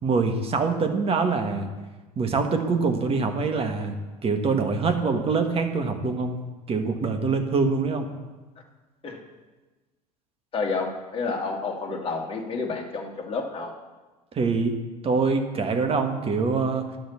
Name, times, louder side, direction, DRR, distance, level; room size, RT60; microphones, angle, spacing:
voice 1, 0.0-1.7 2.2-6.4 6.7-8.1 14.3-14.8 15.0-16.9, right 4 dB, 30° right, 6 dB, 1.5 m, -24 dB
voice 2, 10.5-13.7, left 4 dB, 25° left, 0 dB, 2.1 m, -30 dB
10.5 x 6.2 x 7.2 m, 1.2 s
figure-of-eight pair, 75°, 20 cm